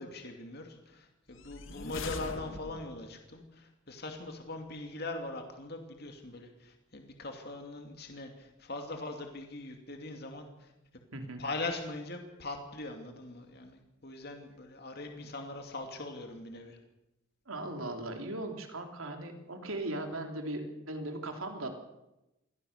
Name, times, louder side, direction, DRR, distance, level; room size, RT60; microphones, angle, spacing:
voice 1, 0.0-10.7 11.4-16.8, left 2 dB, 50° left, 4 dB, 2.7 m, -41 dB
sound 1, 1.3-3.1, left 3 dB, 70° left, 1.9 m, -42 dB
voice 2, 17.5-21.7, right 1 dB, 85° right, 4 dB, 3.4 m, -38 dB
23.5 x 17.0 x 6.7 m, 0.94 s
head